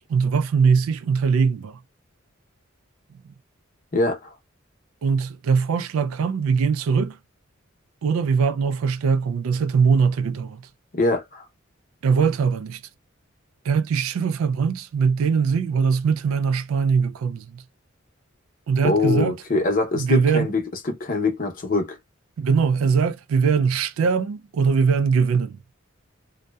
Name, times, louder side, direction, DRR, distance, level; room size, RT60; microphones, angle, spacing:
voice 1, 0.0-1.8 5.0-7.2 8.0-10.6 12.0-12.8 13.7-17.6 18.7-19.4 20.0-20.5 22.4-25.6, right 5 dB, 90° right, 0.3 m, -21 dB
voice 2, 3.9-4.3 10.9-11.4 18.8-22.0, left 3 dB, 40° left, 0.7 m, -23 dB
2.7 x 2.1 x 2.2 m
head